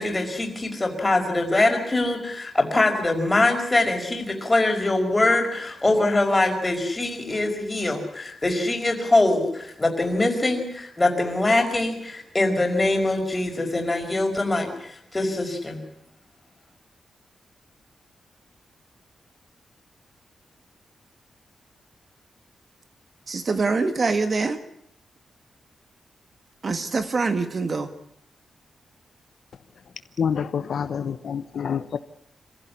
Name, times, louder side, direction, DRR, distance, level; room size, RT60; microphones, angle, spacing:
voice 1, 0.0-15.8, left 2 dB, 15° left, 3 dB, 5.2 m, -23 dB
voice 2, 23.3-24.6 26.6-27.9, right 4 dB, 40° right, 9 dB, 1.6 m, -24 dB
voice 3, 30.2-32.0, left 7 dB, 65° left, 11 dB, 1.0 m, -27 dB
26.5 x 16.0 x 9.9 m, 0.73 s
wide cardioid pair, 150°, 0 cm